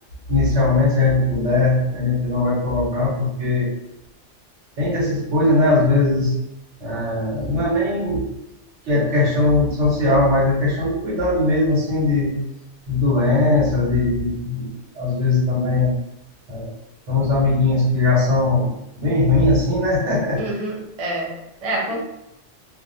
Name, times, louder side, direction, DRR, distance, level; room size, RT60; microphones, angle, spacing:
voice 1, 0.3-3.7 4.8-6.3 6.8-8.2 8.8-12.3 12.9-14.7 15.0-15.9 16.5-16.7 17.1-18.7 19.0-20.4, left 2 dB, 75° right, -6 dB, 1.3 m, -19 dB
voice 2, 20.4-21.3 21.6-21.9, right 1 dB, 45° right, -3 dB, 0.5 m, -26 dB
2.6 x 2.1 x 2.5 m, 0.85 s
omnidirectional pair, 1.2 m